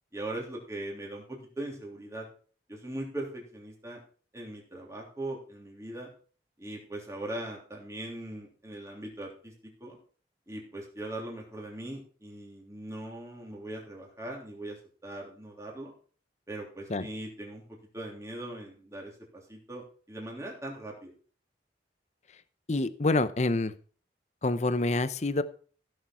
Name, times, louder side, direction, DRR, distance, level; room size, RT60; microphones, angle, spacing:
voice 1, 0.1-2.3 2.7-4.0 4.3-6.1 6.6-10.0 10.5-14.8 15.0-15.9 16.5-17.6 17.9-21.1, right 1 dB, 15° right, -2 dB, 3.2 m, -40 dB
voice 2, 22.7-23.7 24.4-25.4, left 2 dB, 40° left, 13 dB, 0.7 m, -27 dB
15.5 x 6.6 x 4.5 m, 0.43 s
head